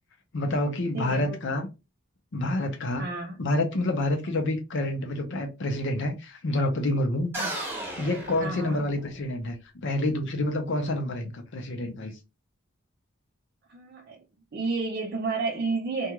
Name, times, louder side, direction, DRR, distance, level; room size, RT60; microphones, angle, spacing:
voice 1, 0.3-1.7 2.3-3.1 3.4-7.3 8.0-9.6 9.8-12.1, left 1 dB, 60° left, 0.6 m, -28 dB
voice 2, 0.9-1.4 3.0-3.4 7.4-7.5 8.4-8.8 13.7-14.2 14.5-16.1, right 3 dB, 50° right, 0.5 m, -31 dB
sound 1, 7.3-9.3, right 1 dB, 10° right, 0.9 m, -35 dB
2.4 x 2.3 x 2.9 m
head